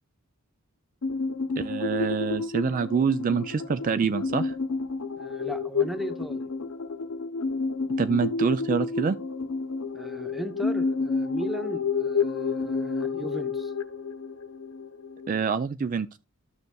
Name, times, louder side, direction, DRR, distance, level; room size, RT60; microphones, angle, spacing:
sound 1, 1.0-15.4, left 4 dB, 90° left, 0.8 m, -30 dB
voice 1, 1.6-4.6 8.0-9.2 15.3-16.2, right 5 dB, 40° right, 0.3 m, -26 dB
voice 2, 5.2-6.5 9.9-13.7, right 1 dB, ahead, 0.8 m, -37 dB
12.5 x 6.7 x 2.3 m
head